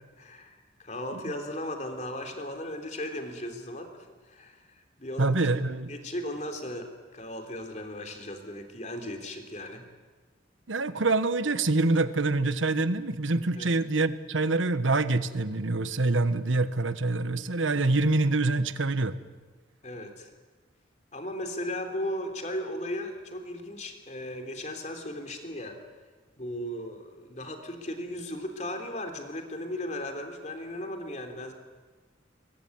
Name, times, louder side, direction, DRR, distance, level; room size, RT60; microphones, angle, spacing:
voice 1, 0.2-5.4 5.9-9.9 13.6-13.7 19.8-20.3 21.1-25.8 26.4-31.5, left 1 dB, 35° left, 5 dB, 3.3 m, -36 dB
voice 2, 5.2-5.9 10.7-19.2, right 2 dB, 85° right, 13 dB, 1.3 m, -25 dB
23.0 x 22.5 x 9.6 m, 1.4 s
head